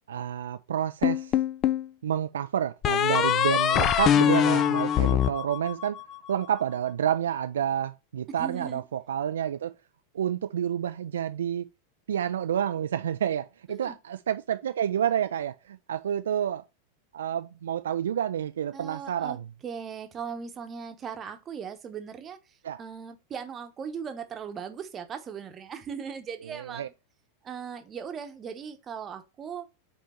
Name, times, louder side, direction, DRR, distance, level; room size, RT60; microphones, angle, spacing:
voice 1, 0.1-1.4 2.0-6.0 6.3-9.7 10.1-11.7 12.1-16.6 17.1-19.4 22.6-22.8 26.4-26.9, right 9 dB, 65° right, 0.3 m, -29 dB
sound 1, 1.0-1.9 2.8-6.2, left 9 dB, 30° left, 0.4 m, -23 dB
voice 2, 8.4-8.8 13.7-14.0 18.7-19.4 19.6-26.9 27.4-29.7, right 7 dB, 25° right, 1.0 m, -38 dB
5.2 x 4.5 x 4.3 m
figure-of-eight pair, 90°, 0 cm